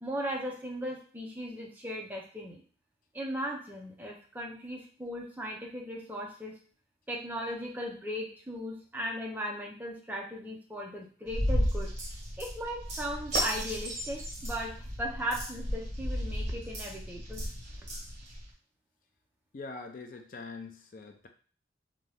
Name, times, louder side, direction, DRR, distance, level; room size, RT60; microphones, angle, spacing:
voice 1, 0.0-2.6 3.1-6.6 7.1-11.9 12.4-17.4, equal, 10° right, -1 dB, 0.5 m, -37 dB
sound 1, 11.3-18.5, equal, 40° right, 1.2 m, -34 dB
voice 2, 19.5-21.3, left 3 dB, 50° left, 5 dB, 0.4 m, -43 dB
2.6 x 2.3 x 3.3 m, 0.43 s
head